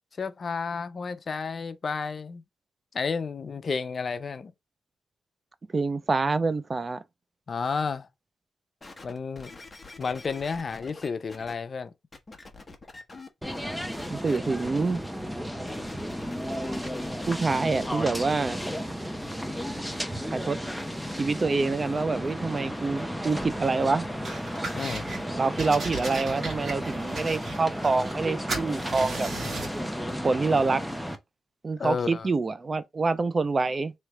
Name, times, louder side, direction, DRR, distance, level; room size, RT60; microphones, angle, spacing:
voice 1, 0.2-2.4 2.9-4.5 7.5-8.1 9.0-9.5 10.0-11.9 24.7-25.1 31.8-32.3, left 5 dB, 50° left, 0.6 m, -31 dB
voice 2, 5.7-7.0 14.1-15.0 17.3-18.7 20.3-20.6 21.1-24.1 25.3-29.3 30.2-30.8 31.6-33.9, right 3 dB, 35° right, 0.4 m, -26 dB
sound 1, 8.8-11.5 12.1-13.6 13.9-14.4 15.6-17.9 18.5-18.6, left 3 dB, 25° left, 1.0 m, -46 dB
sound 2, 13.4-31.2, equal, ahead, 0.7 m, -33 dB
sound 3, 24.2-25.2 25.6-28.2 28.5-29.8, right 3 dB, 60° right, 1.8 m, -36 dB
3.2 x 3.1 x 4.6 m
cardioid pair, 95°, 0 cm